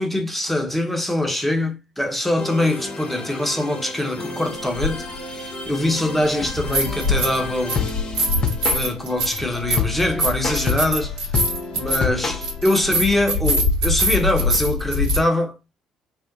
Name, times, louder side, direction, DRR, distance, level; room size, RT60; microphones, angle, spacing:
voice 1, 0.0-7.9 8.6-11.3 11.7-15.6, left 1 dB, 5° left, 1.0 m, -23 dB
sound 1, 2.4-13.2, left 5 dB, 45° left, 0.8 m, -30 dB
sound 2, 4.8-4.9 6.5-7.4 7.7-15.2, left 1 dB, 75° right, 1.1 m, -23 dB
4.4 x 2.1 x 2.5 m
hypercardioid pair, 50°, 2 cm